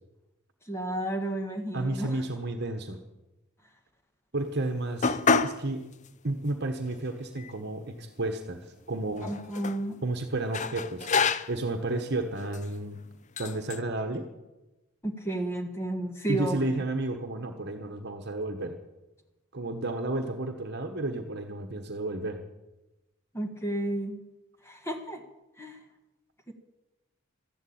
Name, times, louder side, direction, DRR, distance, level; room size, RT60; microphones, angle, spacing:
voice 1, 0.7-2.2 9.2-10.0 15.0-16.7 23.3-24.2 24.6-25.2 25.6-25.8 26.5-26.6, right 1 dB, 10° left, 5 dB, 1.5 m, -32 dB
voice 2, 1.7-3.0 4.3-5.8 6.2-9.3 10.0-11.1 11.5-13.0 13.4-14.3 16.3-18.8 19.5-22.4, right 2 dB, 50° right, 6 dB, 1.2 m, -32 dB
sound 1, 5.0-5.6 6.0-6.1 6.9-7.0 7.3-8.3 9.2-9.8 10.5-11.7 12.4-12.7 13.4-13.8, left 5 dB, 35° left, 0.6 m, -28 dB
13.5 x 12.0 x 8.7 m, 1.0 s
head